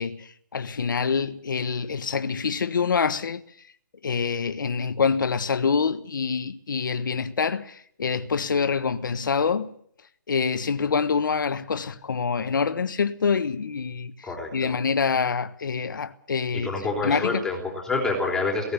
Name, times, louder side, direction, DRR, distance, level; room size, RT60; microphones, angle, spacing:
voice 1, 0.0-3.4 4.0-9.7 10.3-16.8 17.0-17.4, left 5 dB, 75° left, 1.3 m, -26 dB
voice 2, 14.2-14.8 16.5-18.7, left 3 dB, 5° left, 3.5 m, -27 dB
18.5 x 17.5 x 8.2 m
hypercardioid pair, 160°, 11 cm